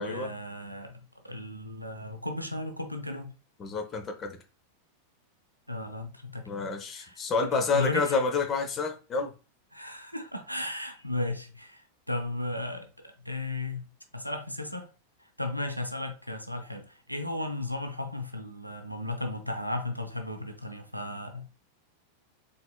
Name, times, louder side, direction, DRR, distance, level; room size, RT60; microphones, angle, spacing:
voice 1, 0.0-3.3 5.7-7.2 7.5-8.2 9.7-13.9 14.1-14.9 15.4-21.6, left 2 dB, 90° right, 0.5 m, -35 dB
voice 2, 3.6-4.3 6.5-9.3, left 4 dB, 25° left, 0.8 m, -29 dB
3.9 x 3.4 x 2.2 m
figure-of-eight pair, 90°, 0 cm